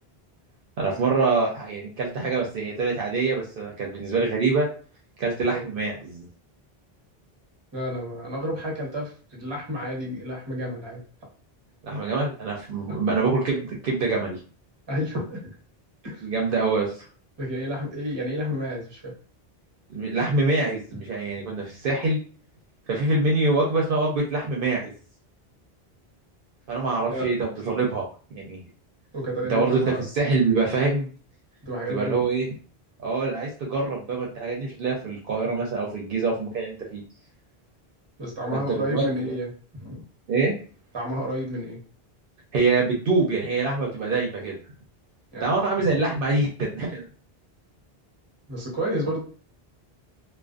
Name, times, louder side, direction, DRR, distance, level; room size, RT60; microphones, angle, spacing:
voice 1, 0.8-4.7 5.2-6.3 11.8-14.4 16.2-17.1 19.9-22.2 22.9-24.9 26.7-28.0 28.3-28.6 29.5-31.1 31.9-32.5 33.0-37.0 38.5-39.3 40.3-40.5 42.5-44.6 45.4-47.1, right 3 dB, 65° right, -1 dB, 0.7 m, -25 dB
voice 2, 7.7-11.0 12.9-13.0 14.9-15.5 16.0-16.3 17.4-19.1 27.1-27.3 29.1-30.0 31.6-32.2 38.2-39.5 39.8-40.0 40.9-41.8 45.3-45.5 48.5-49.2, equal, 30° right, -2 dB, 0.8 m, -30 dB
2.4 x 2.3 x 2.3 m, 0.40 s
omnidirectional pair, 1.0 m